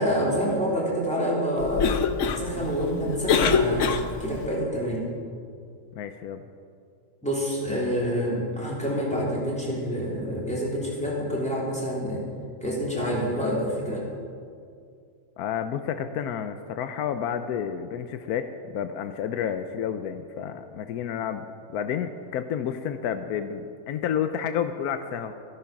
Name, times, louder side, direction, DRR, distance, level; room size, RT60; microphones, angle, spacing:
voice 1, 0.0-1.9 2.2-5.0 7.2-12.2 12.6-14.0, equal, 5° left, -5 dB, 3.3 m, -27 dB
Cough, 1.6-4.5, left 6 dB, 60° left, 1.0 m, -25 dB
voice 2, 5.9-6.4 15.4-21.5 21.7-25.3, left 8 dB, 85° left, 9 dB, 1.2 m, -30 dB
14.0 x 12.5 x 5.9 m, 2.3 s
omnidirectional pair, 1.6 m